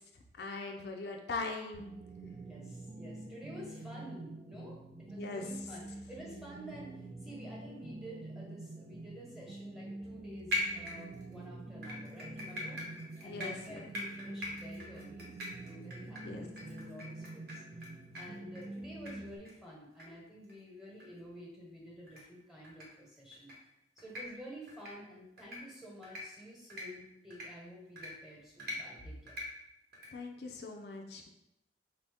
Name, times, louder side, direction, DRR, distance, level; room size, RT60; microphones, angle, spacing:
voice 1, 0.4-1.9 5.1-5.6 13.2-13.8 16.2-16.5 30.1-31.3, left 3 dB, 65° left, 2 dB, 0.4 m, -41 dB
sound 1, 1.7-19.4, right 2 dB, 30° right, 0.3 m, -47 dB
voice 2, 2.3-12.8 13.2-15.3 15.6-17.6 18.1-23.5 24.0-29.4, equal, ahead, -4 dB, 1.1 m, -50 dB
sound 2, 10.5-11.3 11.8-17.9 18.1-18.2 18.5-18.7 19.1-19.2 19.4-19.5 20.0-20.1 20.4-20.5 21.0-21.1 22.1-22.2 22.6-22.8 23.3-23.5 24.0-24.2 24.7-24.9 25.4-25.6 26.0-26.2 26.7-26.8 27.3-27.4 28.0-28.1 28.6-28.8 29.3-29.4 29.9-30.1, left 2 dB, 60° right, 1.0 m, -40 dB
4.1 x 2.7 x 3.4 m, 0.85 s
head